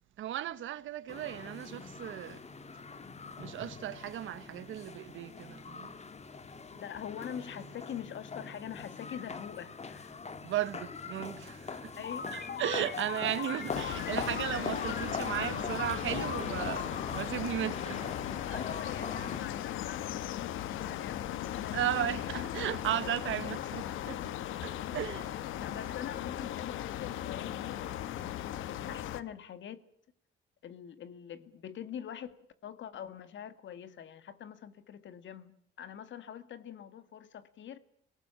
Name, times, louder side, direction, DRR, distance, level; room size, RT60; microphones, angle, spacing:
voice 1, 0.2-2.4 3.4-5.9 10.4-12.0 12.3-18.1 18.5-18.6 21.7-24.2 24.6-25.6, right 12 dB, 80° right, 1.4 m, -36 dB
sound 1, 1.1-19.4, left 4 dB, 35° left, 1.8 m, -43 dB
voice 2, 6.7-10.2 12.0-12.6 13.3-13.4 18.5-22.2 24.7-25.0 25.6-29.8 30.6-37.8, left 9 dB, 70° left, 2.1 m, -44 dB
sound 2, 12.0-18.3, left 6 dB, 50° left, 2.3 m, -40 dB
sound 3, 13.7-29.2, left 11 dB, 90° left, 1.2 m, -37 dB
26.5 x 18.0 x 7.3 m
cardioid pair, 90°, 20 cm